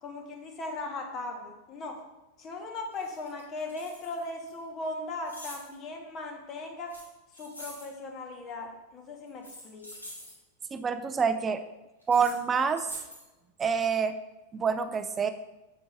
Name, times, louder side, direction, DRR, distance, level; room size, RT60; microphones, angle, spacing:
voice 1, 0.0-2.0 2.4-6.9 7.4-9.9, left 2 dB, 30° left, 3 dB, 1.2 m, -38 dB
sound 1, 2.4-2.5 2.9-4.5 5.2-5.7 6.9-7.9 9.3-10.3 12.0-12.3 12.8-13.2, left 1 dB, 85° left, 2.1 m, -46 dB
voice 2, 10.7-11.6 12.1-12.9 13.6-14.2 14.5-15.3, right 6 dB, 20° right, 10 dB, 0.5 m, -27 dB
7.8 x 6.8 x 2.5 m, 1.0 s
figure-of-eight pair, 90°, 0 cm